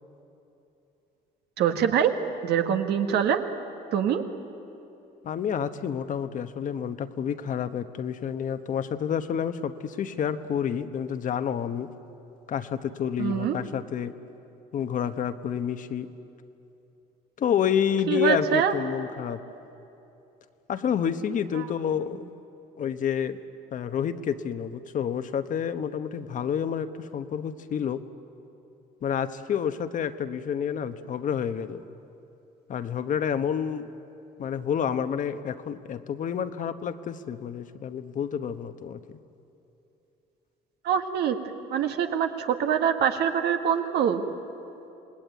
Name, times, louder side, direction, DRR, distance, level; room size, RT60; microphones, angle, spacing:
voice 1, 1.6-2.1 2.4-3.4 3.9-4.2 13.2-13.6 18.1-18.7 21.6-21.7 40.8-41.4 41.7-44.2, right 8 dB, 75° right, 6 dB, 1.8 m, -24 dB
voice 2, 5.2-11.9 12.5-14.1 14.7-16.1 17.4-19.4 20.7-22.2 22.8-23.4 23.7-28.0 29.0-31.8 32.7-33.9 34.4-39.2, left 8 dB, 50° left, 10 dB, 1.1 m, -29 dB
26.5 x 19.0 x 9.3 m, 2.9 s
cardioid pair, 110°, 17 cm